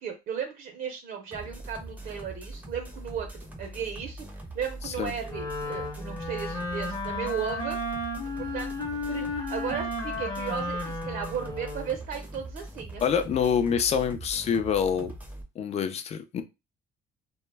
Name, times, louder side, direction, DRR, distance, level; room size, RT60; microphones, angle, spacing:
voice 1, 0.0-4.2 4.5-7.8 8.4-8.7 9.1-13.0, right 7 dB, 60° right, 4 dB, 0.6 m, -35 dB
sound 1, 1.3-15.4, right 2 dB, 10° right, 0.5 m, -42 dB
Wind instrument woodwind instrument, 5.3-12.0, left 2 dB, 20° left, 0.8 m, -33 dB
voice 2, 13.0-15.1 15.6-16.4, left 7 dB, 40° left, 10 dB, 0.4 m, -26 dB
2.1 x 2.1 x 3.2 m, 0.25 s
cardioid pair, 110°, 17 cm